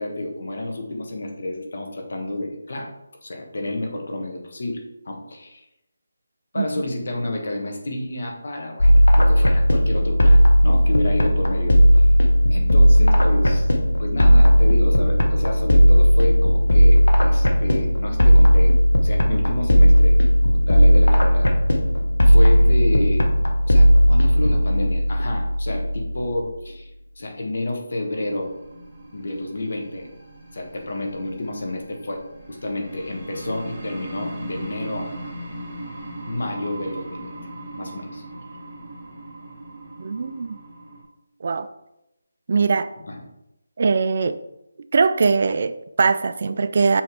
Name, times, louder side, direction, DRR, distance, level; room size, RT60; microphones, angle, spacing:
voice 1, 0.0-2.9 3.2-5.6 6.5-12.1 12.5-13.7 14.0-18.7 19.0-20.2 20.4-21.5 22.3-23.3 23.6-26.9 27.2-28.5 29.1-30.1 30.5-32.2 32.5-35.3 36.3-37.3 37.8-38.2 43.0-43.2, left 1 dB, 60° left, 1.5 m, -30 dB
sound 1, 8.8-26.4, equal, 90° left, 1.1 m, -16 dB
sound 2, 28.1-41.0, right 1 dB, 15° right, 2.1 m, -38 dB
voice 2, 40.0-40.6 41.4-41.7 42.5-42.9 43.8-44.4 44.9-47.0, right 4 dB, 40° right, 0.3 m, -21 dB
7.4 x 3.4 x 4.8 m
figure-of-eight pair, 170°, 0 cm